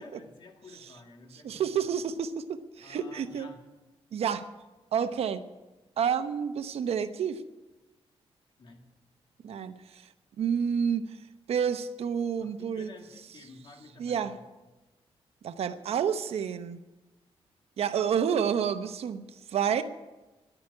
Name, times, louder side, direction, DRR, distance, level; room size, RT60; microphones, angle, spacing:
voice 1, 0.0-2.0 2.8-3.6 8.6-8.8 12.4-14.5, left 3 dB, 50° left, 3 dB, 2.1 m, -51 dB
voice 2, 1.4-3.5 4.1-4.4 4.9-5.4 6.0-7.4 9.4-10.0 10.4-11.0 11.5-12.9 14.0-14.3 15.4-16.8 17.8-19.2 19.5-19.8, right 7 dB, 75° right, 11 dB, 0.8 m, -29 dB
11.0 x 9.4 x 9.5 m, 1.1 s
wide cardioid pair, 155°, 10 cm